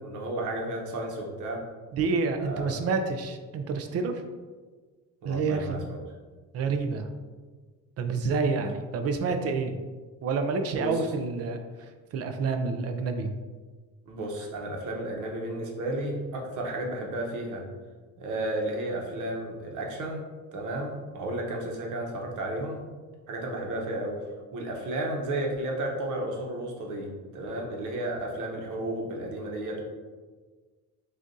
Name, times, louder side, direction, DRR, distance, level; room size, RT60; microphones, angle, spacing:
voice 1, 0.0-1.6 2.4-2.8 5.2-6.0 10.7-11.1 14.1-17.7 18.2-20.2 20.5-22.8 23.3-24.2 24.5-29.8, right 1 dB, 80° right, 0 dB, 1.0 m, -33 dB
voice 2, 1.9-4.2 5.2-5.8 6.5-7.1 8.0-9.8 10.2-11.6 12.1-13.3, right 4 dB, 55° right, 7 dB, 0.4 m, -28 dB
6.4 x 2.5 x 2.6 m, 1.4 s
cardioid pair, 150°, 30 cm